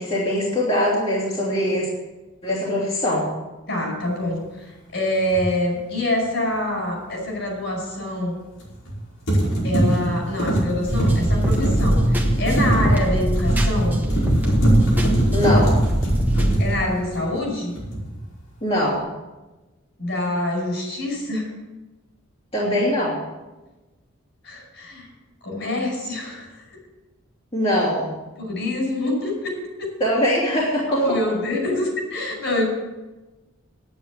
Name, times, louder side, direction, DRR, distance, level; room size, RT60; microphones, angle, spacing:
voice 1, 0.0-1.9 2.4-3.2 15.3-15.7 18.6-19.0 22.5-23.2 27.5-28.1 30.0-31.0, left 1 dB, 30° left, -7 dB, 2.6 m, -22 dB
voice 2, 3.7-8.3 9.6-14.0 16.6-17.7 20.0-21.5 24.4-25.1 25.4-26.8 28.4-29.5 29.8-29.9 30.9-32.6, left 1 dB, 60° left, 0 dB, 5.6 m, -25 dB
sound 1, 5.3-5.5 8.6-9.0 9.3-17.5 17.8-18.2, right 1 dB, 80° left, 5.3 m, -22 dB
sound 2, 10.9-16.6, equal, 10° right, 1.4 m, -21 dB
10.0 x 9.2 x 7.4 m, 1.1 s
head